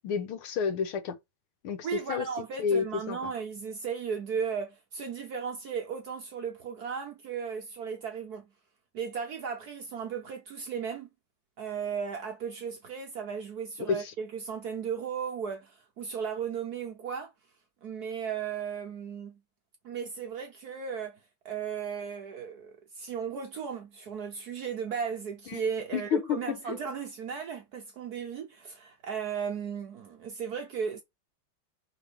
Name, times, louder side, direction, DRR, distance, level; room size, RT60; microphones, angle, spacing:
voice 1, 0.0-1.1 1.6-2.3 2.6-3.3 13.9-14.1 25.5-25.6 25.9-26.8, left 7 dB, 75° left, 1.9 m, -30 dB
voice 2, 1.8-8.4 8.9-11.1 11.6-17.3 17.8-19.4 19.8-21.2 21.4-31.0, right 6 dB, 60° right, 1.1 m, -35 dB
5.1 x 3.7 x 5.0 m
omnidirectional pair, 2.4 m